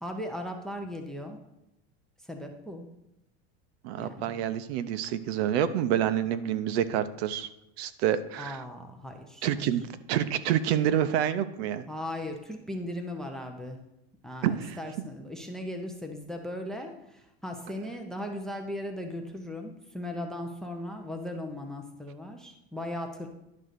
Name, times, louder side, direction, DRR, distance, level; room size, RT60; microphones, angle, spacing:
voice 1, 0.0-1.4 2.2-2.9 4.0-4.4 8.4-9.7 11.9-13.8 14.2-23.3, left 1 dB, ahead, 3 dB, 0.6 m, -38 dB
voice 2, 3.8-7.5 7.8-8.6 9.4-11.9 14.4-14.8, right 10 dB, 70° right, 12 dB, 0.7 m, -28 dB
10.5 x 3.8 x 6.7 m, 0.89 s
supercardioid pair, 165°, 33 cm